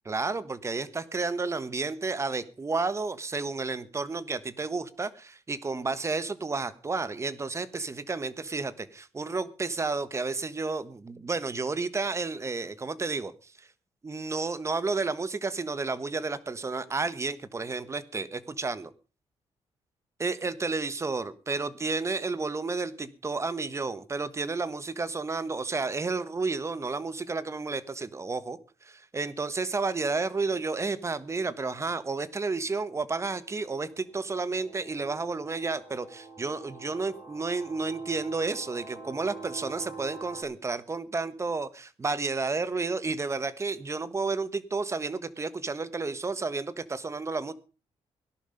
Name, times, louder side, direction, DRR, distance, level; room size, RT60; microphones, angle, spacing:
voice 1, 0.0-13.5 14.0-18.9 20.2-47.5, right 3 dB, 25° right, 15 dB, 1.3 m, -31 dB
sound 1, 33.0-40.4, right 4 dB, 40° right, 6.8 m, -46 dB
17.5 x 11.5 x 5.2 m, 0.36 s
cardioid pair, 110°, 11 cm